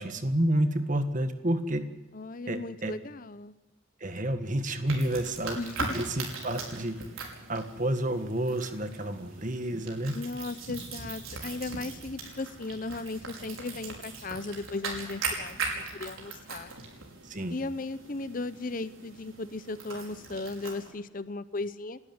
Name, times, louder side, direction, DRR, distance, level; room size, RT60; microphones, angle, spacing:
voice 1, 0.0-1.9 2.5-2.9 4.0-5.6 5.9-7.0 7.5-10.2 17.2-17.6, right 1 dB, 40° right, 8 dB, 1.7 m, -29 dB
voice 2, 2.1-3.5 5.5-6.0 10.1-16.7 17.5-22.0, left 3 dB, 40° left, 14 dB, 0.7 m, -36 dB
sound 1, 4.9-20.9, right 4 dB, 90° right, 5.4 m, -40 dB
28.5 x 13.0 x 9.6 m, 1.0 s
head